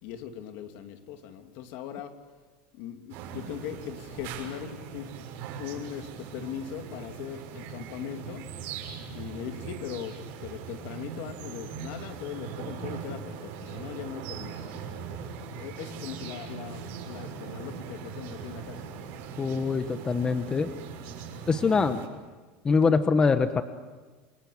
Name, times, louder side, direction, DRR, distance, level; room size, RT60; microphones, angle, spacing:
voice 1, 0.0-2.1 2.7-5.1 5.6-8.5 9.1-15.0 15.5-18.9, left 9 dB, 65° left, 6 dB, 2.8 m, -40 dB
sound 1, 3.1-22.1, right 6 dB, 60° right, 6.6 m, -40 dB
voice 2, 19.4-20.7 21.5-22.0 22.6-23.6, left 5 dB, 20° left, 9 dB, 1.1 m, -24 dB
29.0 x 20.5 x 8.8 m, 1.3 s
supercardioid pair, 140°, 4 cm